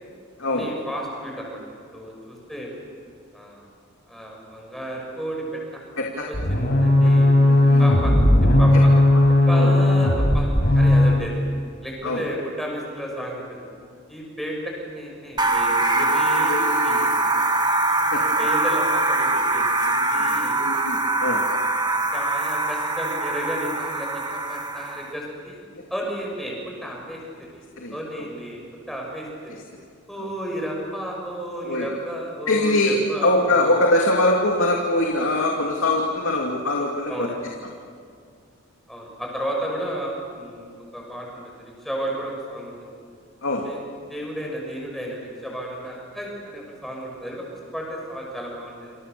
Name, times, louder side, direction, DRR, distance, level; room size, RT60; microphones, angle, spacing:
voice 1, 0.4-2.7 3.3-3.7 4.1-5.4 5.7-5.8 6.3-7.3 7.8-8.1 8.6-8.9 9.5-10.5 10.7-11.4 11.8-13.6 14.1-17.1 18.2-20.6 22.1-25.6 25.9-27.2 27.5-27.6 27.9-28.6 28.9-29.5 30.1-33.8 37.1-37.4 38.9-42.9 43.7-43.8 44.1-47.4 47.7-49.0, equal, ahead, -1 dB, 6.5 m, -33 dB
voice 2, 6.0-6.3 7.0-7.1 7.5-7.9 8.7-9.2 9.5-9.7 12.0-12.2 15.5-15.7 15.9-16.1 16.4-17.1 18.1-18.5 20.2-21.4 25.7-25.8 27.8-28.0 30.2-30.3 31.6-32.0 32.5-37.3 43.4-43.7, left 1 dB, 70° left, -1 dB, 2.6 m, -23 dB
sound 1, 6.3-11.2, left 1 dB, 45° left, 6.1 m, -16 dB
sound 2, 15.4-25.1, right 2 dB, 20° right, 1.5 m, -23 dB
28.5 x 28.0 x 7.0 m, 2.2 s
head